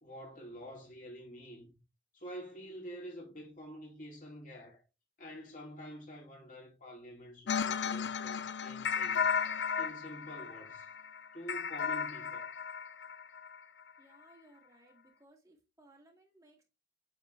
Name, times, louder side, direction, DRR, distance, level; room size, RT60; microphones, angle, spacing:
voice 1, 0.0-1.7 2.1-4.8 5.2-9.3 9.8-10.9 11.3-12.5, equal, 45° left, 2.8 m, -47 dB
sound 1, 7.5-13.6, left 6 dB, 75° left, 0.5 m, -35 dB
voice 2, 14.0-16.6, right 1 dB, 20° right, 2.2 m, -62 dB
8.4 x 4.3 x 3.4 m
head